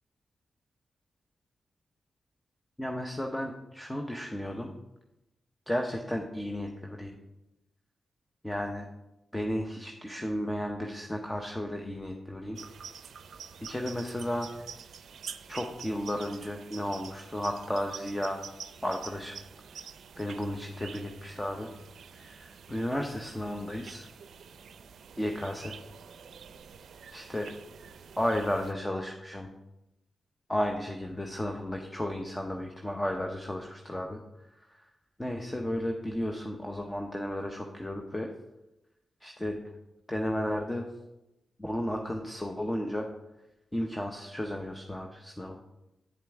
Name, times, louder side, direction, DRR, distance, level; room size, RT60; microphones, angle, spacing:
voice 1, 2.8-4.7 5.7-7.2 8.4-8.8 9.3-12.6 13.6-14.5 15.5-18.4 18.8-19.4 20.2-21.7 22.1-24.1 25.2-25.8 27.1-27.5 28.2-29.5 30.5-34.2 34.6-34.9 35.2-38.3 39.2-39.6 40.1-40.8 41.6-43.1 43.7-45.6, left 1 dB, 15° left, 2 dB, 0.8 m, -33 dB
sound 1, 12.5-28.7, right 7 dB, 75° right, 0.4 m, -47 dB
8.6 x 7.4 x 3.6 m, 0.95 s
cardioid pair, 60°, 0 cm